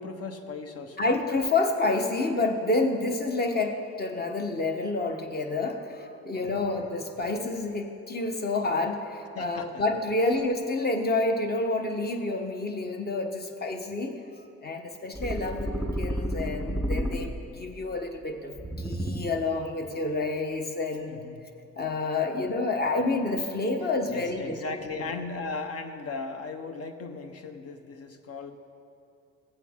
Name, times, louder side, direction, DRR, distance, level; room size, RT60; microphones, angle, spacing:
voice 1, 0.0-1.1 6.3-6.8 9.3-9.8 17.0-17.4 21.0-21.4 24.1-28.5, left 4 dB, 55° left, 7 dB, 0.9 m, -38 dB
voice 2, 1.0-14.2 14.6-21.2 21.8-24.6 24.9-25.1, left 2 dB, 30° left, 5 dB, 1.1 m, -29 dB
sound 1, 15.1-17.6 18.5-19.5, equal, 5° right, 0.7 m, -31 dB
15.5 x 8.2 x 3.6 m, 2.7 s
cardioid pair, 90°, 30 cm